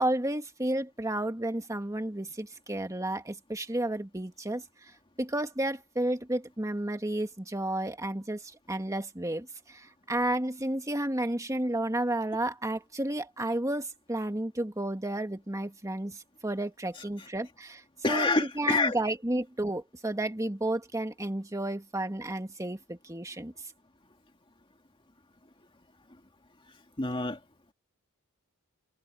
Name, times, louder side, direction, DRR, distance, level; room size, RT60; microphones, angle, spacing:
voice 1, 0.0-4.6 5.2-23.5, right 1 dB, 15° right, 1.8 m, -32 dB
voice 2, 17.0-17.3 18.0-19.0 27.0-27.4, left 3 dB, 25° left, 2.3 m, -27 dB
head